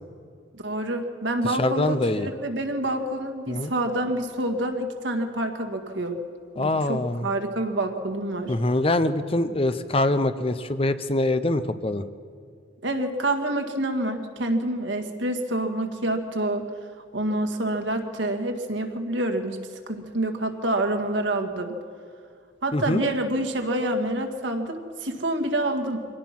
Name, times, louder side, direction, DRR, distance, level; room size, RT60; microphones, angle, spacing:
voice 1, 0.5-6.2 6.6-8.6 12.8-16.7 17.1-19.6 19.9-21.8 22.6-26.1, right 1 dB, 75° right, 5 dB, 2.0 m, -27 dB
voice 2, 1.6-2.3 3.5-3.7 6.6-7.3 8.5-12.0 22.7-23.0, left 2 dB, 30° left, 11 dB, 0.8 m, -24 dB
24.5 x 18.0 x 6.0 m, 2.3 s
head